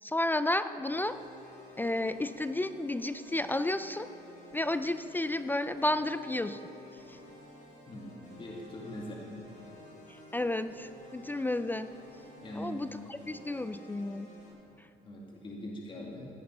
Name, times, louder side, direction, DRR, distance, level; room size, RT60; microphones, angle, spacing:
voice 1, 0.0-1.2 1.8-4.1 4.5-6.6 7.1-7.2 10.1-11.9 12.5-14.3 14.8-14.9, left 1 dB, 10° left, 12 dB, 0.4 m, -32 dB
sound 1, 0.9-14.5, equal, 50° left, 3.6 m, -52 dB
voice 2, 7.9-9.3 12.4-12.7 15.0-16.3, equal, 30° left, -2 dB, 2.4 m, -42 dB
15.5 x 9.4 x 5.5 m, 3.0 s
cardioid pair, 110°, 17 cm